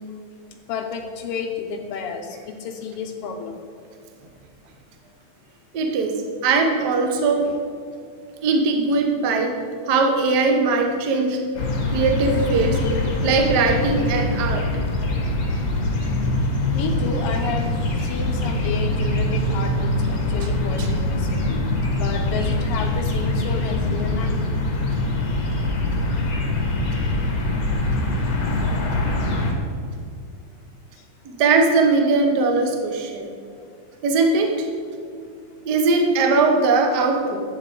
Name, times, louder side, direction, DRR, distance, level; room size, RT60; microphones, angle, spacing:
voice 1, 0.7-3.6 7.4-7.6 16.7-21.7 21.9-24.4 27.0-27.1 31.0-31.1, left 5 dB, 85° left, 4 dB, 1.3 m, -31 dB
voice 2, 5.7-6.1 6.4-7.4 8.4-9.5 9.9-11.4 11.9-12.8 13.2-14.6 20.8-20.9 31.2-33.3 34.0-34.7 35.6-37.4, right 3 dB, 70° right, 3 dB, 0.9 m, -20 dB
sound 1, 11.5-29.5, left 2 dB, 45° left, 1.2 m, -23 dB
11.0 x 8.3 x 4.6 m, 2.3 s
omnidirectional pair, 3.5 m